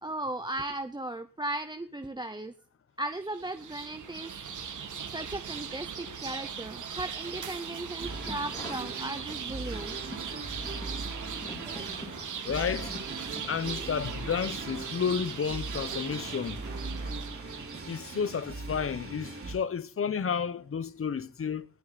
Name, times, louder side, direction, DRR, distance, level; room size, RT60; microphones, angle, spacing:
voice 1, 0.0-2.5 3.0-4.3 5.1-10.0 10.3-10.4 11.7-12.0, right 1 dB, 15° right, 0.8 m, -37 dB
sound 1, 3.2-18.4, right 7 dB, 70° right, 1.8 m, -39 dB
sound 2, 8.0-9.6 9.9-14.0 14.3-14.4, left 2 dB, 15° left, 3.2 m, -46 dB
sound 3, 8.0-19.5, right 3 dB, 45° right, 3.7 m, -40 dB
voice 2, 12.4-12.9 13.5-16.6 17.8-21.7, left 7 dB, 45° left, 0.9 m, -31 dB
19.5 x 6.7 x 4.1 m
cardioid pair, 80°, 31 cm